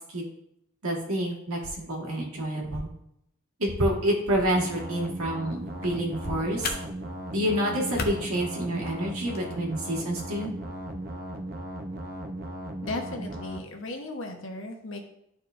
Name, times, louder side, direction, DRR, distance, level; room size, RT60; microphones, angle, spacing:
voice 1, 0.8-2.9 3.6-6.7 7.3-10.5, equal, 85° right, -1 dB, 1.8 m, -28 dB
sound 1, 4.5-13.6, right 1 dB, 45° right, 0.7 m, -37 dB
sound 2, 5.5-9.5, left 3 dB, 45° left, 0.7 m, -39 dB
voice 2, 12.8-15.0, left 2 dB, 65° left, 3 dB, 1.1 m, -36 dB
11.5 x 4.2 x 2.6 m, 0.77 s
head